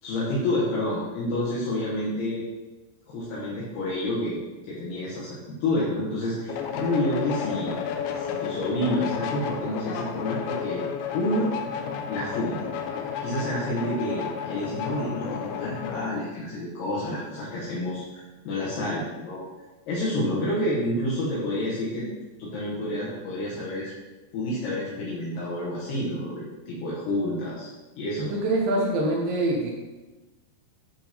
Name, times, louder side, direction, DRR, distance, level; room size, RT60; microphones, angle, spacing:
voice 1, 0.0-2.4 3.1-7.8 8.1-10.9 11.1-11.5 11.8-12.6 12.9-19.4 19.9-22.1 22.4-23.9 24.3-27.7 28.0-28.3, left 1 dB, 70° left, -8 dB, 3.1 m, -29 dB
sound 1, 6.5-16.1, left 7 dB, 85° left, 2.9 m, -32 dB
voice 2, 28.2-29.7, right 1 dB, 80° right, -2 dB, 3.2 m, -25 dB
10.0 x 4.4 x 3.5 m, 1.2 s
omnidirectional pair, 5.1 m